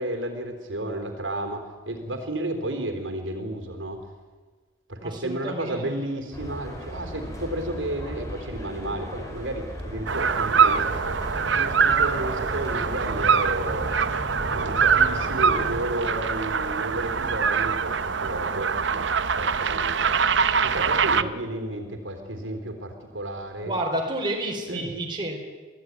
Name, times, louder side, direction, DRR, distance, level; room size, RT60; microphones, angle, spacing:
voice 1, 0.0-4.0 4.9-13.9 14.5-19.0 19.3-20.1 20.6-23.7 24.7-24.9, right 1 dB, 85° right, 5 dB, 3.6 m, -32 dB
voice 2, 5.0-5.9 21.2-21.3 23.7-25.4, right 1 dB, 25° right, 0 dB, 3.8 m, -30 dB
sound 1, 6.3-15.8, equal, 15° left, 4.2 m, -36 dB
sound 2, 10.1-21.2, right 6 dB, 65° right, 0.7 m, -23 dB
23.5 x 15.0 x 9.6 m, 1.4 s
head